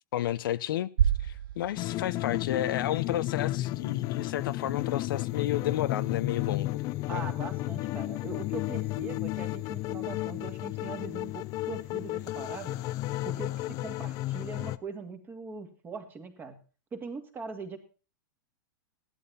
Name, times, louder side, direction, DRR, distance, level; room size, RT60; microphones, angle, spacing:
voice 1, 0.1-0.9 1.2-6.8 7.1-7.3, left 12 dB, 70° left, 14 dB, 0.8 m, -31 dB
sound 1, 1.0-3.1, right 9 dB, 75° right, 0.9 m, -30 dB
sound 2, 1.8-14.8, left 17 dB, 30° left, 0.6 m, -33 dB
voice 2, 7.1-12.8 13.2-16.6 16.9-17.8, right 4 dB, 15° right, 7 dB, 2.3 m, -41 dB
15.5 x 12.0 x 4.2 m, 0.36 s
supercardioid pair, 155°, 12 cm